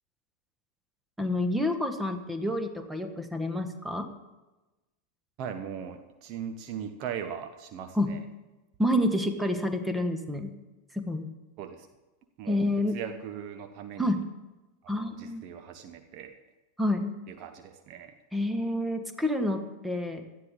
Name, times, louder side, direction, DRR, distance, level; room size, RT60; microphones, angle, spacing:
voice 1, 1.2-4.1 7.9-8.1 8.8-10.5 10.9-11.3 12.5-13.0 14.0-14.2 14.9-15.4 16.8-17.2 18.3-20.2, left 1 dB, 5° right, 8 dB, 1.5 m, -28 dB
voice 2, 5.4-8.2 11.6-11.9 12.4-12.6 12.9-14.1 14.9-16.4 17.3-18.1, right 8 dB, 40° right, 7 dB, 1.0 m, -39 dB
17.5 x 13.0 x 3.8 m, 1.1 s
figure-of-eight pair, 90°, 0 cm